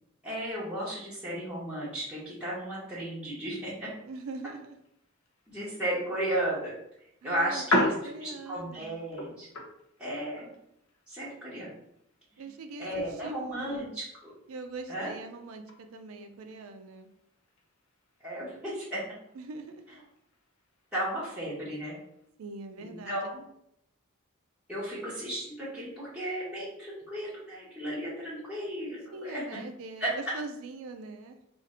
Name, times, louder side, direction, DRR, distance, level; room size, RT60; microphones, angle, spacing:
voice 1, 0.2-3.9 5.5-6.7 7.2-9.5 10.0-10.5 11.1-11.7 12.3-12.4 12.8-14.3 14.9-15.1 18.2-19.0 20.9-21.9 22.8-23.4 24.7-29.4 30.0-30.1, right 1 dB, 5° right, -10 dB, 0.9 m, -34 dB
voice 2, 4.0-4.8 7.2-9.0 12.4-13.9 14.5-17.1 19.3-19.8 22.4-23.4 29.1-31.5, right 3 dB, 90° right, 6 dB, 0.4 m, -42 dB
sound 1, 4.1-22.3, left 1 dB, 85° left, 0.7 m, -39 dB
2.7 x 2.5 x 4.1 m, 0.77 s
head